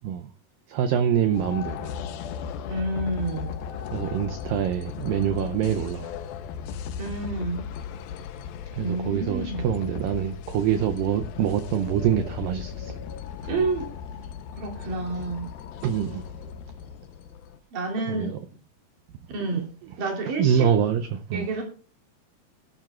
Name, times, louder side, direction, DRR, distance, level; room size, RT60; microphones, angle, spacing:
voice 1, 0.7-1.9 3.9-6.1 8.7-12.9 15.8-16.2 18.1-18.4 20.0-20.1 20.4-21.4, right 9 dB, 80° right, 2.0 m, -25 dB
sound 1, 1.3-17.6, left 7 dB, 75° left, 2.5 m, -36 dB
voice 2, 2.7-3.5 7.0-7.7 8.8-9.7 13.5-13.9 14.5-15.5 17.7-18.4 19.3-19.7 20.0-20.7 21.3-21.6, right 2 dB, 55° right, 4.3 m, -29 dB
21.0 x 12.0 x 2.4 m
omnidirectional pair, 4.6 m